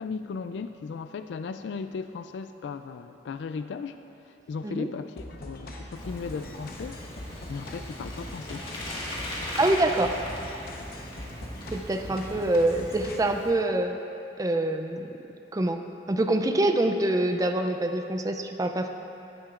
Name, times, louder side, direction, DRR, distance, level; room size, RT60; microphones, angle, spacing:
voice 1, 0.0-4.0 4.5-7.0 7.5-8.7, left 5 dB, 80° left, 10 dB, 0.3 m, -36 dB
sound 1, 5.2-13.2, left 1 dB, 55° left, 1.0 m, -42 dB
Bicycle, 6.0-13.5, left 1 dB, 30° left, 1.7 m, -38 dB
voice 2, 9.6-10.2 11.7-14.0 14.4-15.1 15.5-15.8 16.1-18.9, right 1 dB, 20° right, 6 dB, 0.4 m, -25 dB
14.5 x 10.5 x 2.5 m, 2.9 s
head